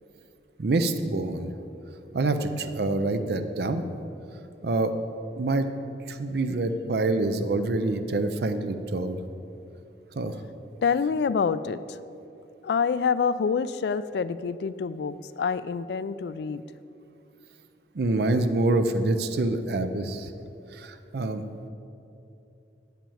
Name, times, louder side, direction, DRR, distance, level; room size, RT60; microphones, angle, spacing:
voice 1, 0.6-1.5 2.1-3.8 4.6-4.9 5.4-5.7 6.1-9.2 10.2-10.3 17.9-20.3 20.7-21.4, right 2 dB, 65° right, 9 dB, 0.5 m, -26 dB
voice 2, 10.8-12.0 12.6-16.6, left 5 dB, 70° left, 15 dB, 0.3 m, -27 dB
8.5 x 5.9 x 7.0 m, 2.8 s
head